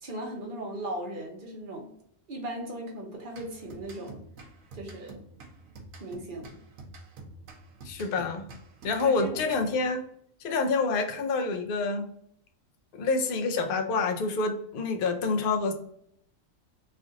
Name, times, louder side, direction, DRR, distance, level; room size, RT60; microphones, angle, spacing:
voice 1, 0.0-1.9 2.3-4.2 4.7-5.2 6.0-6.6 9.0-9.8, right 1 dB, 45° right, 0 dB, 0.9 m, -38 dB
sound 1, 3.3-10.0, right 2 dB, 85° right, 1.1 m, -48 dB
voice 2, 7.8-8.4 8.8-10.0 10.4-12.1 12.9-15.7, left 4 dB, 55° left, 4 dB, 0.6 m, -27 dB
3.2 x 2.5 x 3.8 m, 0.69 s
omnidirectional pair, 1.4 m